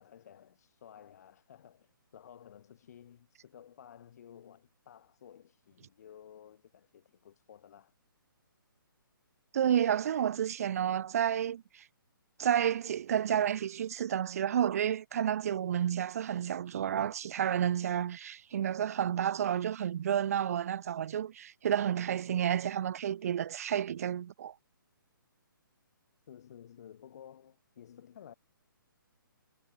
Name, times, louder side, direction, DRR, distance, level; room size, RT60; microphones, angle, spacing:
voice 1, 0.0-7.9 26.3-28.3, left 9 dB, 45° left, 4.9 m, -54 dB
voice 2, 9.5-11.8 12.4-24.5, right 9 dB, 40° right, 0.6 m, -30 dB
hypercardioid pair, 160°, 12 cm